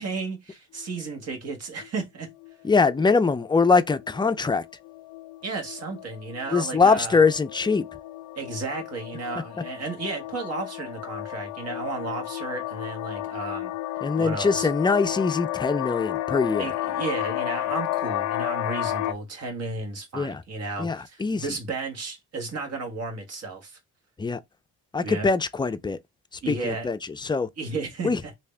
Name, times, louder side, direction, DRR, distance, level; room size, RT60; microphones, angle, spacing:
voice 1, 0.0-2.3 5.4-7.2 8.3-13.7 14.2-14.7 16.6-23.8 25.0-25.3 26.4-26.9 27.6-28.3, right 3 dB, 55° right, 1.5 m, -33 dB
sound 1, 0.8-1.3 1.8-2.5 2.8-19.1, left 14 dB, 75° left, 0.5 m, -33 dB
voice 2, 2.6-4.6 6.5-7.8 14.0-16.7 20.1-20.4 20.8-21.4 24.2-24.4 24.9-26.0 26.5-27.5 28.0-28.2, left 4 dB, 15° left, 0.4 m, -22 dB
3.4 x 2.8 x 3.2 m
cardioid pair, 90°, 30 cm